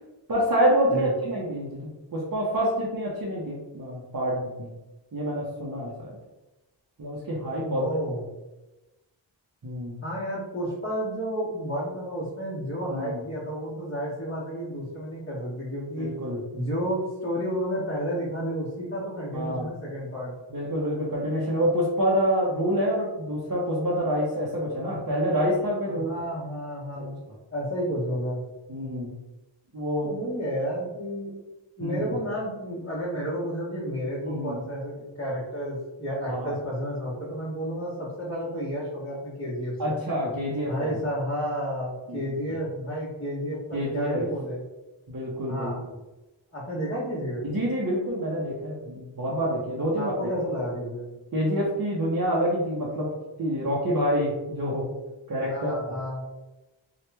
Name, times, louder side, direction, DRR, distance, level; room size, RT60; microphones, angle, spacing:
voice 1, 0.3-1.8 2.1-4.7 5.1-6.1 7.0-7.9 9.6-10.0 12.9-13.2 16.0-16.4 19.3-19.7 20.5-26.1 27.0-27.1 28.7-29.1 29.7-30.1 31.8-32.2 34.2-34.6 36.3-36.6 39.8-41.0 42.1-42.3 43.7-44.3 45.1-45.7 47.4-50.3 51.3-53.1 53.4-54.9 55.3-55.7, equal, 45° right, -6 dB, 0.8 m, -27 dB
voice 2, 7.7-8.2 10.0-16.1 16.5-20.3 25.9-27.2 27.5-28.4 30.0-31.3 31.8-40.0 40.6-44.6 45.5-45.8 46.5-47.4 50.0-51.1 55.4-56.2, equal, 25° left, -9 dB, 1.2 m, -31 dB
2.9 x 2.4 x 3.3 m, 1.1 s
wide cardioid pair, 40°, 48 cm